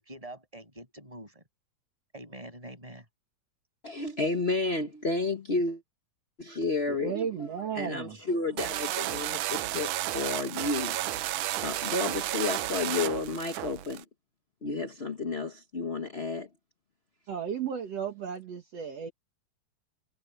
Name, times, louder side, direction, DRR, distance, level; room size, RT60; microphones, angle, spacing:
voice 1, 0.0-1.4 2.1-3.1, right 1 dB, 10° right, 7.7 m, -45 dB
voice 2, 3.8-5.8 6.4-7.5 7.7-11.0 11.6-14.0 14.6-16.5, left 3 dB, 60° left, 0.6 m, -31 dB
voice 3, 6.9-8.2 17.3-19.1, right 7 dB, 60° right, 2.7 m, -34 dB
sound 1, 8.6-14.0, right 14 dB, 90° right, 2.3 m, -32 dB
omnidirectional pair, 3.4 m